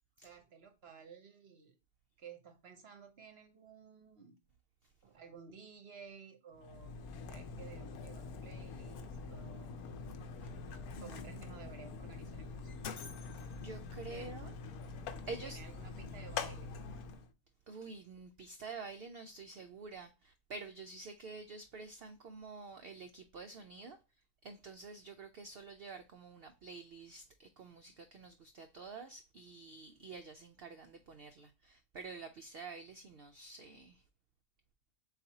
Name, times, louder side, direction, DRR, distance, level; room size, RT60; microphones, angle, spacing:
voice 1, 0.2-1.8 2.2-4.4 5.0-7.0 7.3-9.8 11.0-12.7 14.1-14.4 15.3-16.7, right 6 dB, 55° right, 0.8 m, -54 dB
Mechanisms, 6.5-17.3, left 4 dB, 80° left, 1.1 m, -45 dB
voice 2, 11.0-11.6 13.6-14.5 15.3-15.6 17.7-24.0 24.4-34.0, right 4 dB, 80° right, 0.5 m, -49 dB
4.1 x 4.0 x 2.7 m
omnidirectional pair, 1.6 m